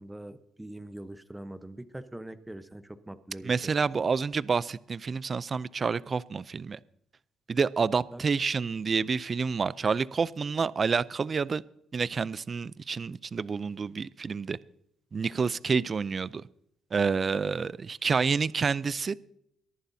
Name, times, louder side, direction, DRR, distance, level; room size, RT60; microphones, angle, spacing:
voice 1, 0.0-3.5 8.1-8.2, right 1 dB, 10° right, 0.9 m, -43 dB
voice 2, 3.4-6.8 7.5-11.6 11.9-14.6 15.1-16.4 16.9-19.2, right 5 dB, 40° right, 0.4 m, -28 dB
23.0 x 11.0 x 2.7 m
cardioid pair, 90°, 0 cm